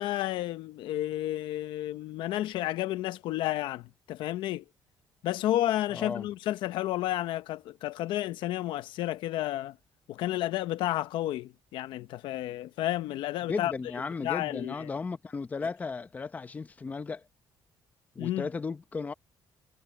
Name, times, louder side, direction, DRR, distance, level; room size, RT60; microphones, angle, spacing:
voice 1, 0.0-4.6 5.2-9.8 10.1-13.7 14.2-14.9 18.2-18.5, left 14 dB, 90° left, 0.8 m, -31 dB
voice 2, 5.9-6.3 13.5-17.3 18.1-19.1, left 4 dB, 20° left, 0.9 m, -35 dB
cardioid pair, 160°, 8 cm